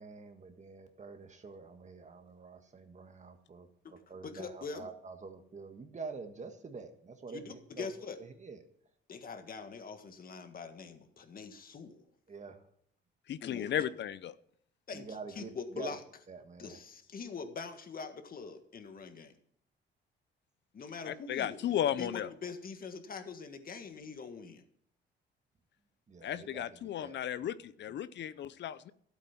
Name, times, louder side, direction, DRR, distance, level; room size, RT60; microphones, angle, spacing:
voice 1, 0.0-3.7 4.1-7.9 8.2-8.6 12.3-12.6 14.9-15.9 16.3-16.8 26.1-27.2, right 4 dB, 35° right, 6 dB, 1.5 m, -47 dB
voice 2, 3.8-4.9 7.3-8.2 9.1-12.0 13.4-13.7 14.9-16.0 16.6-19.3 20.7-24.6, left 5 dB, 45° left, 8 dB, 1.7 m, -44 dB
voice 3, 13.3-14.3 21.1-22.3 26.2-28.9, left 10 dB, 65° left, 16 dB, 0.7 m, -35 dB
12.5 x 8.2 x 5.9 m, 0.66 s
cardioid pair, 90°, 20 cm